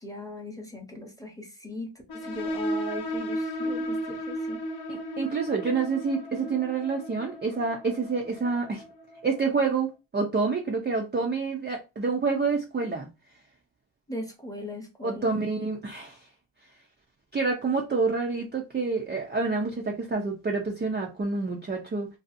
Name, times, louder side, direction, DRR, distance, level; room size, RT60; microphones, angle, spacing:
voice 1, 0.0-1.9 2.1-4.6 14.1-15.3, left 1 dB, 5° left, 0.7 m, -38 dB
sound 1, 2.1-9.4, equal, 50° left, 0.7 m, -34 dB
voice 2, 4.9-8.8 9.2-13.1 15.0-16.2 17.3-22.1, right 4 dB, 25° right, 0.4 m, -28 dB
2.6 x 2.4 x 2.5 m
cardioid pair, 95°, 49 cm